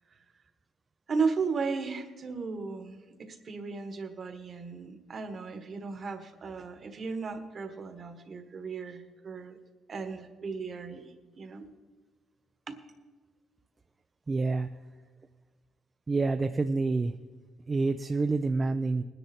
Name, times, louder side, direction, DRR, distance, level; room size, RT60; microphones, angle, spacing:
voice 1, 1.1-9.6 9.9-11.7 12.7-12.8, right 4 dB, 40° right, 8 dB, 1.3 m, -35 dB
voice 2, 14.3-14.7 16.1-17.1 17.7-19.0, right 3 dB, 25° right, 8 dB, 0.4 m, -27 dB
20.0 x 10.0 x 4.3 m, 1.4 s
cardioid pair, 140°, 0 cm